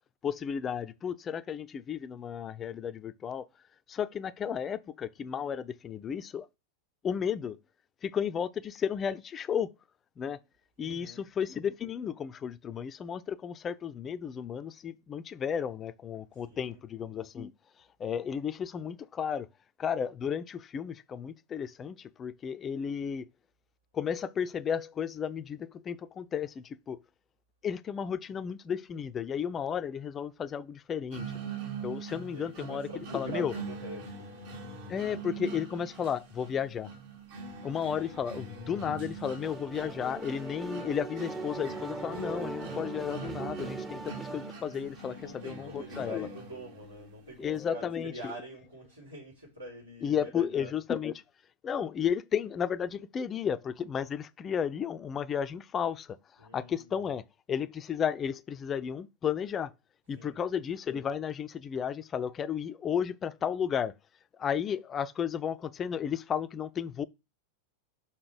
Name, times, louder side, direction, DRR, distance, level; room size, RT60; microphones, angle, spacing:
voice 1, 0.2-3.5 3.9-6.5 7.0-7.6 8.0-9.7 10.2-10.4 10.8-17.5 18.0-19.5 19.8-23.2 23.9-27.0 27.6-31.2 31.8-32.9 33.1-33.5 34.9-36.9 37.6-46.3 47.4-48.3 50.0-51.1 51.6-56.2 56.5-59.7 60.1-63.9 64.4-67.0, left 8 dB, 25° left, 0.5 m, -33 dB
voice 2, 10.8-11.3 16.4-16.8 32.3-34.6 45.0-50.7 56.4-57.0 60.2-60.4, right 2 dB, 80° right, 4.5 m, -46 dB
sound 1, 31.1-47.1, right 5 dB, 60° right, 2.6 m, -43 dB
sound 2, 39.4-44.5, right 2 dB, 10° right, 0.7 m, -40 dB
5.9 x 5.7 x 5.0 m
figure-of-eight pair, 90°, 0 cm